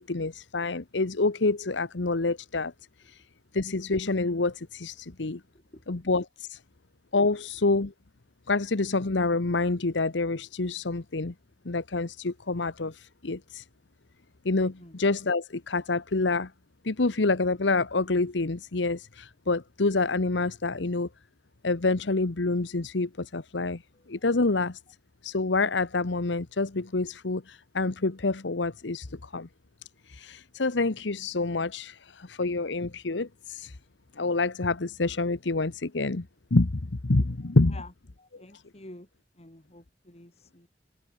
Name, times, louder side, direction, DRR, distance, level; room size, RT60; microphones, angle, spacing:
voice 1, 0.0-2.7 3.0-3.2 3.5-5.4 5.9-6.6 7.1-7.9 8.5-11.3 11.6-13.7 14.4-16.5 16.8-21.1 21.6-23.8 24.1-24.8 25.2-29.5 30.0-33.8 34.2-36.3 36.5-37.8, left 3 dB, 90° left, 1.1 m, -27 dB
voice 2, 5.5-6.0 14.8-15.0 23.9-24.1 37.7-37.9 38.2-39.1 39.3-40.7, left 2 dB, 35° left, 3.4 m, -49 dB
head